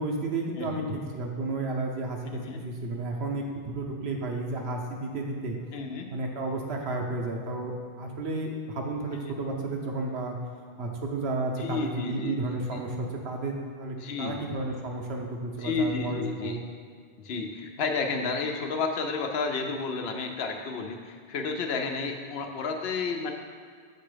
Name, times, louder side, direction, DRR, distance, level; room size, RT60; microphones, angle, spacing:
voice 1, 0.0-5.6 6.1-10.4 10.8-16.6, right 2 dB, 85° right, 1 dB, 1.1 m, -32 dB
voice 2, 0.6-0.9 2.3-2.6 5.7-6.1 10.8-10.9 11.6-12.3 12.7-12.8 14.0-14.4 15.6-16.6 17.2-23.3, left 4 dB, 80° left, 4 dB, 0.9 m, -31 dB
6.7 x 3.5 x 4.9 m, 2.1 s
omnidirectional pair, 1.0 m